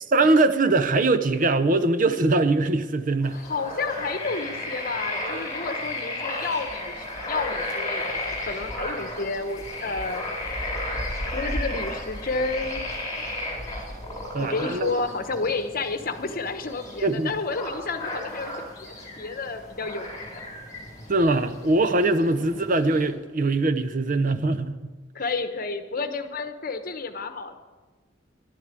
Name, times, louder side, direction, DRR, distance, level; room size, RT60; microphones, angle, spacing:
voice 1, 0.1-3.4 14.3-15.0 17.0-17.3 21.1-24.9, right 2 dB, 45° right, 0.7 m, -22 dB
sound 1, 3.2-23.1, left 1 dB, 20° left, 4.5 m, -34 dB
voice 2, 3.3-10.2 11.2-12.9 14.4-20.1 20.3-20.4 25.1-27.6, left 3 dB, 50° left, 1.1 m, -31 dB
11.5 x 10.5 x 8.3 m
head